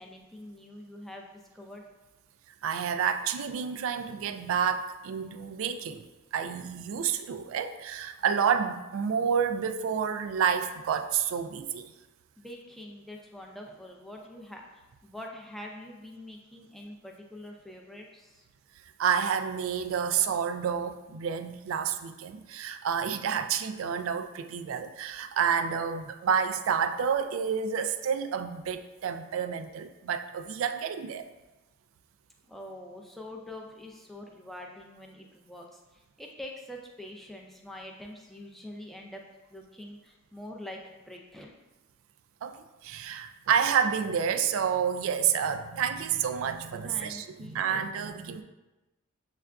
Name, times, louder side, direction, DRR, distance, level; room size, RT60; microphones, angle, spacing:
voice 1, 0.0-1.8 12.4-18.5 32.5-39.2 39.5-41.5 46.8-48.4, left 1 dB, ahead, 0 dB, 0.4 m, -45 dB
voice 2, 2.6-6.0 6.3-11.9 19.0-31.2 42.4-48.4, right 7 dB, 80° right, 9 dB, 0.3 m, -29 dB
7.2 x 2.4 x 2.2 m, 1.1 s
head